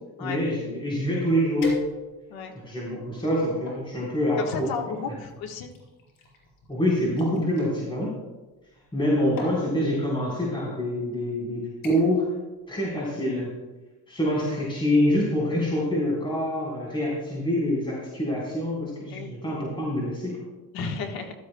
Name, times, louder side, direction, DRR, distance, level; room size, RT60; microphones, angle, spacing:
voice 1, 0.2-1.8 2.6-4.7 5.1-5.2 6.7-8.1 8.9-12.2 12.7-13.5 14.1-20.5, left 1 dB, 15° left, -6 dB, 4.1 m, -26 dB
sound 1, 1.6-2.4 3.0-3.9 4.8-7.7 8.8-9.0 9.4-9.7 10.6-10.7 11.1-11.4 11.8-12.2 12.6-12.9 13.3-13.4, left 4 dB, 65° left, 4.4 m, -41 dB
voice 2, 4.4-5.7 19.1-19.3 20.7-21.3, left 5 dB, 90° left, 4 dB, 1.4 m, -33 dB
15.5 x 12.5 x 2.2 m, 1.1 s
cardioid pair, 110°, 35 cm